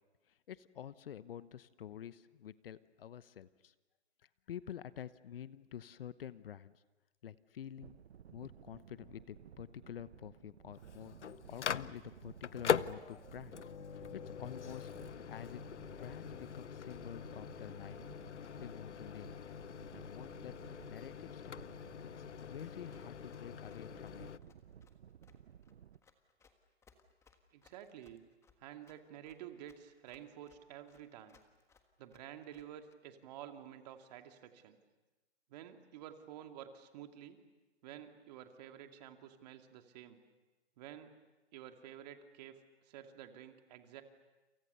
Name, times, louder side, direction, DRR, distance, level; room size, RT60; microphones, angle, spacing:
voice 1, 0.3-3.7 4.5-6.8 7.2-8.0 8.3-11.1 11.5-13.6 13.9-14.9 15.3-15.6 16.0-18.0 18.4-19.3 19.9-21.6 22.2-24.5, left 10 dB, 55° left, 16 dB, 1.0 m, -49 dB
sound 1, 7.8-26.0, right 9 dB, 65° right, 0.9 m, -57 dB
Microwave oven, 10.7-24.4, left 7 dB, 85° left, 0.8 m, -42 dB
Run, 22.9-33.0, left 5 dB, 10° left, 1.5 m, -68 dB
voice 2, 27.5-28.2 28.6-31.4 32.0-34.8 35.5-37.4 37.8-40.2 40.8-41.1 41.5-44.0, right 10 dB, 35° right, 6 dB, 2.4 m, -51 dB
29.0 x 28.0 x 6.8 m, 1.1 s
hypercardioid pair, 140°, 34 cm